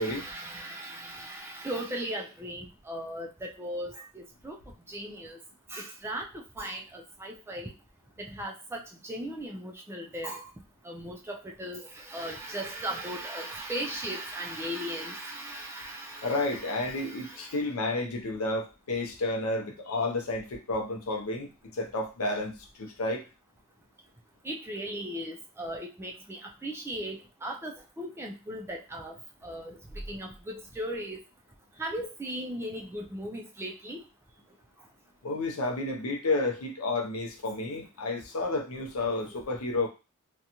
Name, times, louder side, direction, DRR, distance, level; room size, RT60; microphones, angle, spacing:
voice 1, 0.0-4.6 4.9-5.4 5.7-7.7 8.2-10.5 10.8-17.6 24.4-29.1 29.4-29.8 30.1-31.2 31.8-34.0, right 1 dB, 10° right, 1 dB, 0.3 m, -37 dB
voice 2, 16.2-23.2 35.2-39.9, left 2 dB, 70° left, 2 dB, 0.6 m, -31 dB
2.5 x 2.2 x 2.8 m, 0.30 s
head